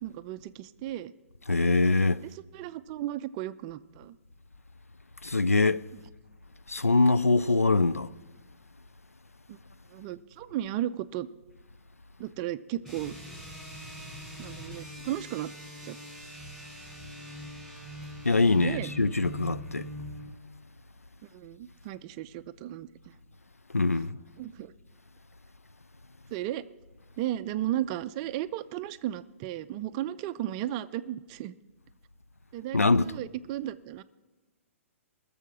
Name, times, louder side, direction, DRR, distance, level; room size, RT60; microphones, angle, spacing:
voice 1, 0.0-1.1 2.2-4.2 7.5-7.6 9.5-9.6 9.9-11.3 12.2-13.2 14.4-15.5 15.8-16.0 18.6-18.9 21.3-23.1 24.4-24.7 26.3-26.6 27.2-31.5 32.5-34.0, right 13 dB, 30° right, 0.4 m, -35 dB
voice 2, 1.5-2.2 5.2-5.9 6.7-8.1 18.2-19.9 23.7-24.2 32.7-33.2, left 3 dB, 85° left, 0.4 m, -23 dB
sound 1, 12.8-20.4, equal, 5° left, 3.8 m, -42 dB
20.0 x 7.0 x 5.9 m
figure-of-eight pair, 120°, 8 cm